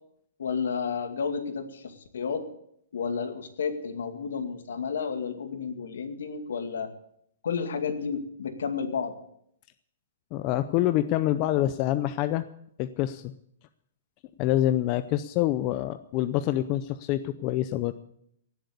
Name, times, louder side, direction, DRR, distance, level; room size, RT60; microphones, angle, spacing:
voice 1, 0.4-2.5 2.9-6.9 7.4-9.1, left 6 dB, 85° left, 7 dB, 2.2 m, -31 dB
voice 2, 10.3-12.4 12.8-13.3 14.4-17.9, left 13 dB, 30° left, 12 dB, 0.5 m, -26 dB
17.5 x 8.0 x 8.2 m, 0.71 s
hypercardioid pair, 165°, 0 cm